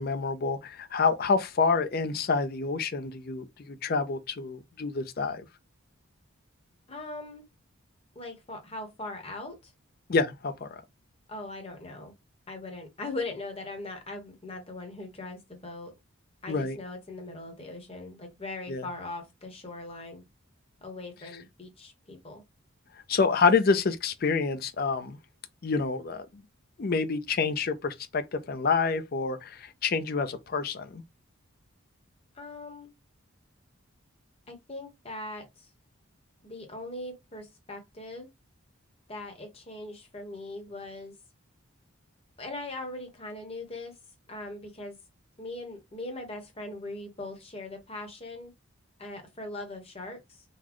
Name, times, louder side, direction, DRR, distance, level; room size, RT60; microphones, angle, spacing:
voice 1, 0.0-5.4 10.1-10.8 16.5-16.8 18.7-18.9 23.1-25.2 25.6-26.3 26.8-31.0, left 4 dB, 45° left, 0.4 m, -27 dB
voice 2, 6.9-7.4 8.1-9.7 11.3-12.1 12.5-15.9 16.4-20.2 20.8-22.4 32.3-32.9 34.5-35.7 36.4-38.3 39.1-41.1 42.4-43.9 44.3-45.0 45.4-48.5 49.0-50.4, left 2 dB, 25° left, 1.0 m, -40 dB
4.0 x 2.2 x 2.9 m
head